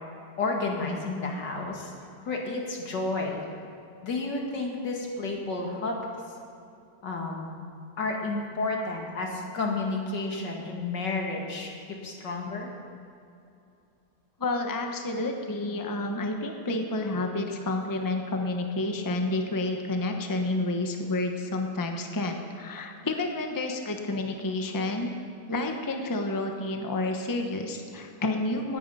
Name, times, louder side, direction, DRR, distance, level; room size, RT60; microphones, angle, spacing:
voice 1, 0.4-1.9 2.3-3.4 4.0-6.0 7.0-7.5 8.0-12.7, left 3 dB, 85° left, 0 dB, 2.6 m, -31 dB
voice 2, 14.4-25.1 25.5-28.8, left 2 dB, 15° left, 3 dB, 0.8 m, -30 dB
18.5 x 9.5 x 5.6 m, 2.6 s
omnidirectional pair, 1.8 m